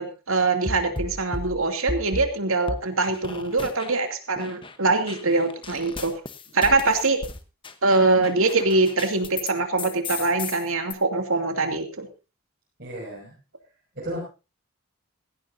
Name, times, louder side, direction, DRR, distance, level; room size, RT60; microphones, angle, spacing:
voice 1, 0.0-6.1 6.5-7.2 7.8-12.1, right 3 dB, 75° right, 5 dB, 2.6 m, -23 dB
sound 1, 0.7-2.3 2.7-4.1 4.4-9.5 9.8-10.9, left 3 dB, 25° left, 1.0 m, -35 dB
voice 2, 12.8-13.3 13.9-14.2, right 1 dB, 45° right, -5 dB, 5.9 m, -34 dB
17.5 x 15.5 x 2.7 m, 0.31 s
head